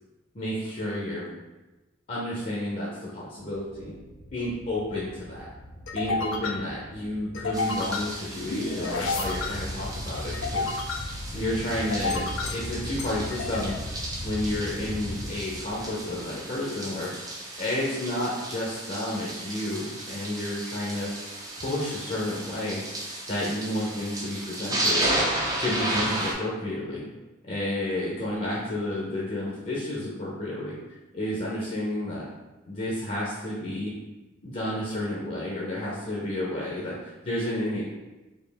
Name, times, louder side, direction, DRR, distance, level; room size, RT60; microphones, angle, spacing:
voice 1, 0.3-1.3 2.1-3.9 4.3-5.5 5.9-10.7 11.3-13.7 14.2-17.1 17.6-21.1 21.6-22.8 23.3-25.2 25.6-27.0 27.5-30.7 31.1-32.2 32.7-33.9 34.4-37.9, left 1 dB, 40° left, -6 dB, 0.7 m, -31 dB
sound 1, 3.7-16.3, left 2 dB, 80° left, 0.5 m, -33 dB
sound 2, 7.5-26.3, right 1 dB, 20° right, 0.5 m, -34 dB
4.3 x 2.6 x 3.4 m, 1.1 s
head